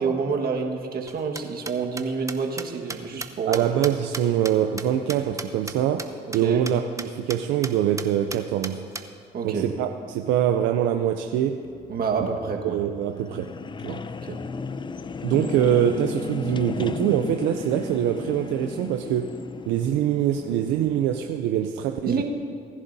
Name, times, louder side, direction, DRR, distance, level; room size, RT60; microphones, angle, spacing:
voice 1, 0.0-3.6 6.4-6.6 9.3-9.7 11.9-12.8 14.2-14.4 22.0-22.2, right 5 dB, 55° right, 1 dB, 1.6 m, -27 dB
sound 1, 1.1-5.7 6.0-6.1 6.3-6.4 6.7-6.8 7.0-7.4 7.6-7.7 8.0-9.0, right 3 dB, 15° right, 0.8 m, -34 dB
voice 2, 3.5-6.1 6.3-8.8 9.4-11.6 12.6-13.5 13.8-14.0 15.2-19.4 19.7-22.2, right 10 dB, 80° right, 6 dB, 0.5 m, -24 dB
sound 2, 11.6-21.4, left 4 dB, 25° left, 0.4 m, -35 dB
19.5 x 11.0 x 2.7 m, 2.3 s
supercardioid pair, 65°, 18 cm